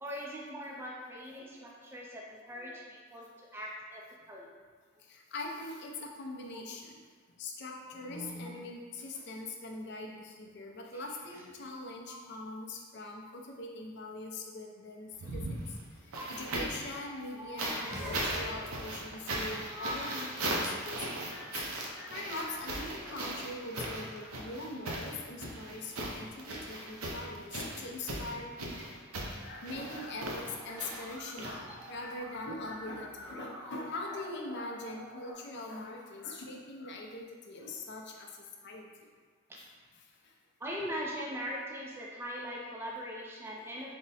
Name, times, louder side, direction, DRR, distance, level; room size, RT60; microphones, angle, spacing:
voice 1, 0.0-4.5 6.5-6.6 7.9-8.6 10.9-11.1 12.1-12.4 16.1-16.3 17.1-18.9 19.5-20.3 21.8-22.0 28.7-28.8 39.5-39.6 40.6-44.0, equal, 10° right, -3 dB, 0.3 m, -42 dB
voice 2, 5.1-7.0 7.4-15.6 16.3-28.9 29.4-38.3 38.6-38.8 39.6-39.7, left 2 dB, 55° left, 1 dB, 0.5 m, -42 dB
sound 1, 15.1-16.9 17.6-32.1 33.2-33.3, right 1 dB, 80° right, 0.6 m, -38 dB
sound 2, 17.9-19.4, left 1 dB, 35° left, 1.0 m, -43 dB
Musical instrument, 29.8-35.3, equal, 10° left, 1.0 m, -50 dB
3.5 x 2.0 x 4.0 m, 1.6 s
head